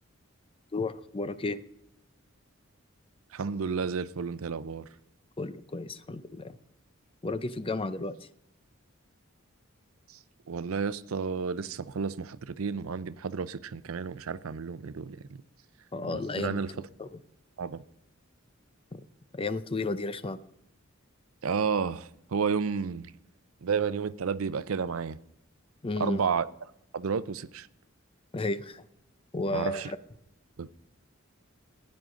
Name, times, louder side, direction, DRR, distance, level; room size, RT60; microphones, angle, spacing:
voice 1, 0.7-1.6 5.4-6.5 7.2-8.2 15.9-16.6 17.0-17.1 18.9-19.0 19.3-20.4 25.8-26.2 28.3-28.8 29.3-30.0, left 2 dB, 25° left, 0.6 m, -32 dB
voice 2, 3.3-4.9 10.1-10.2 10.5-15.2 16.1-16.9 17.6-17.8 21.4-23.1 23.6-25.2 26.0-26.5 26.9-27.7 29.5-29.9 30.6-30.7, right 6 dB, 85° right, 0.5 m, -31 dB
15.5 x 9.7 x 3.8 m
head